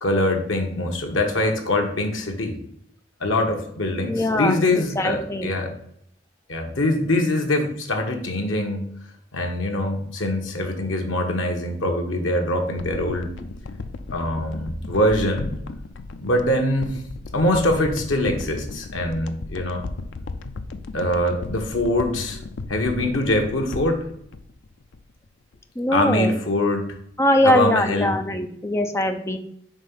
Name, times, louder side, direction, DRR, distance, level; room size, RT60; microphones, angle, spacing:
voice 1, 0.0-2.6 3.2-5.7 6.5-8.9 9.3-13.3 14.1-15.6 16.2-17.0 17.3-19.8 20.9-22.4 22.7-24.1 25.9-26.9 27.4-28.1, left 1 dB, 85° left, 2 dB, 1.3 m, -23 dB
voice 2, 4.1-5.5 25.8-26.3 27.2-29.4, left 1 dB, 15° left, 5 dB, 0.5 m, -22 dB
sound 1, 12.8-25.2 25.5-25.6, left 3 dB, 70° left, 0.5 m, -36 dB
5.3 x 3.4 x 5.5 m, 0.69 s
head